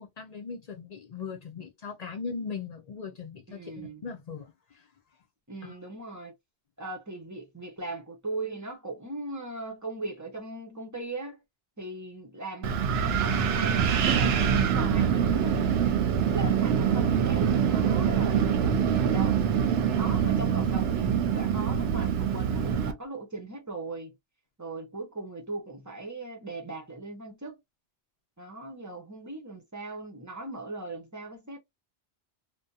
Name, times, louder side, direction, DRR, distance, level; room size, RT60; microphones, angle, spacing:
voice 1, 0.0-4.9 5.6-5.8, left 5 dB, 55° left, 0.4 m, -39 dB
voice 2, 3.5-4.0 5.5-6.3 6.8-11.4 11.8-15.7 16.3-19.4 19.9-24.2 24.6-27.6 28.4-31.6, right 2 dB, 20° right, 0.6 m, -39 dB
Wind, 12.6-22.9, right 7 dB, 70° right, 0.8 m, -25 dB
2.7 x 2.2 x 2.3 m
omnidirectional pair, 1.2 m